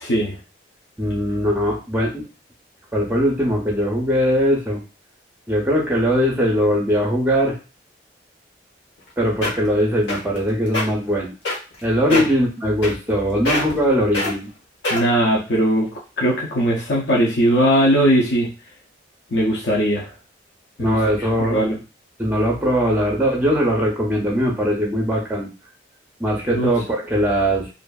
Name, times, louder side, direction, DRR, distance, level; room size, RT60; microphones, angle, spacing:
voice 1, 0.0-0.4 12.1-12.2 14.9-18.5 19.3-20.1 20.8-21.0 21.4-21.8 26.5-26.7, equal, 70° left, -4 dB, 0.6 m, -19 dB
voice 2, 1.0-2.2 2.9-4.8 5.5-7.6 9.2-11.3 11.8-14.5 20.8-21.6 22.2-25.5 26.2-27.7, equal, 10° right, -1 dB, 0.5 m, -20 dB
sound 1, 9.0-9.1 9.4-9.7 10.1-10.4 10.7-10.8 11.5-11.8 12.1-12.4 12.8-13.2 13.5-13.8 14.1-14.3 14.8-15.2 15.8-15.9, left 2 dB, 90° left, 1.1 m, -23 dB
2.6 x 2.4 x 2.3 m, 0.31 s
head